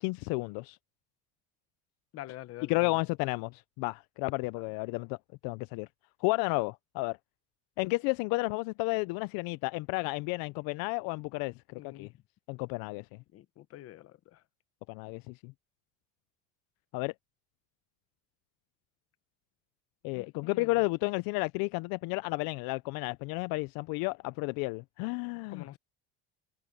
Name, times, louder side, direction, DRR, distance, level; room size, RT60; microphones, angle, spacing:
voice 1, 0.0-0.8 2.7-5.2 5.4-5.9 6.2-7.2 7.8-12.1 12.5-13.2 14.9-15.5 16.9-17.1 20.0-25.8, left 25 dB, 70° left, 0.5 m, -32 dB
voice 2, 2.1-2.9 11.8-12.1 13.3-14.4 20.1-20.7 25.5-25.8, left 14 dB, 40° left, 0.9 m, -46 dB
cardioid pair, 170°, 36 cm